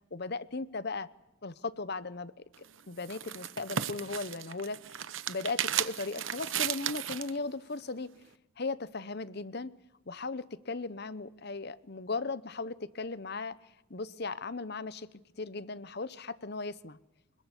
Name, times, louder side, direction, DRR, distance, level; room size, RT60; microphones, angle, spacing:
voice 1, 0.1-1.1 1.4-2.3 2.6-4.8 5.3-8.1 8.6-9.7 10.1-13.6 13.9-15.1 15.4-17.0, left 3 dB, 50° left, 16 dB, 0.9 m, -37 dB
Opening ziplock bag, 2.5-7.4, right 10 dB, 65° right, 0.9 m, -35 dB
25.5 x 22.0 x 8.3 m, 0.90 s
head